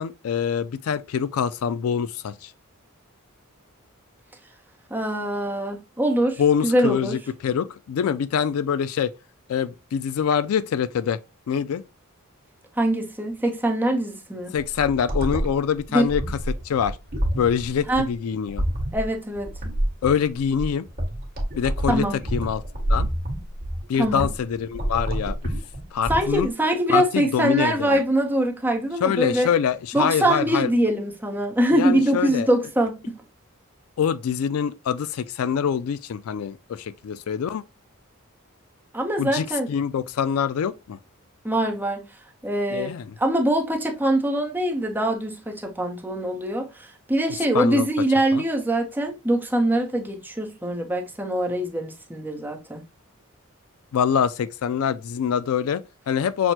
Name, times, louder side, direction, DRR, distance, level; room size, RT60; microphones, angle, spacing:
voice 1, 0.0-2.5 6.4-9.1 9.5-11.2 11.5-11.8 14.5-16.2 16.6-17.0 17.3-18.6 20.0-20.9 21.5-22.1 22.3-22.6 22.9-23.1 23.9-25.5 25.9-26.5 26.9-28.0 29.0-30.7 31.7-32.5 34.0-37.6 39.2-41.0 42.7-43.1 47.5-47.9 48.3-48.4 53.9-56.5, left 7 dB, 75° left, 0.3 m, -25 dB
voice 2, 4.9-7.2 12.8-14.5 15.9-16.0 17.9-18.1 18.9-19.5 21.9-22.2 24.0-24.3 26.1-29.5 29.9-33.2 38.9-39.7 41.4-42.0 42.4-42.9 43.2-52.8, right 1 dB, 10° right, 0.8 m, -23 dB
sound 1, 14.6-26.5, right 1 dB, 45° right, 1.5 m, -28 dB
6.1 x 2.1 x 2.8 m
head